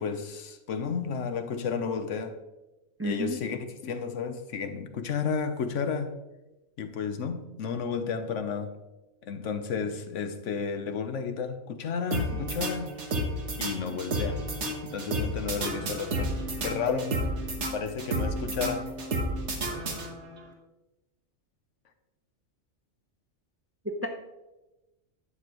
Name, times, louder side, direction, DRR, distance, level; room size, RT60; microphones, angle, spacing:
voice 1, 0.0-2.4 3.0-6.1 6.8-8.7 9.2-12.9 13.6-14.4 14.8-16.4 16.6-17.2 17.7-18.9, left 6 dB, 85° left, 8 dB, 1.1 m, -32 dB
voice 2, 3.0-3.4 12.3-12.4 23.8-24.1, right 1 dB, 20° right, 4 dB, 0.4 m, -31 dB
sound 1, 12.1-20.4, right 1 dB, 75° right, 1.5 m, -31 dB
11.0 x 7.3 x 3.0 m, 1.0 s
omnidirectional pair, 1.2 m